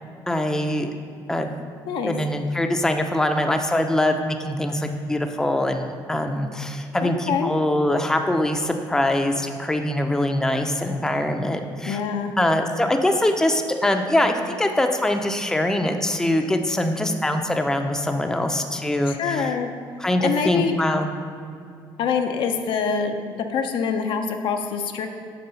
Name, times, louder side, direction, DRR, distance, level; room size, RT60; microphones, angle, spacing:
voice 1, 0.3-0.9 1.3-1.5 2.1-12.0 12.4-19.5 20.0-21.1, left 1 dB, 5° left, 5 dB, 0.5 m, -23 dB
voice 2, 7.0-7.5 11.9-12.3 19.1-19.7 20.2-20.8 22.0-25.1, left 6 dB, 70° left, 5 dB, 0.6 m, -25 dB
6.7 x 3.7 x 5.6 m, 2.5 s
cardioid pair, 90°, 9 cm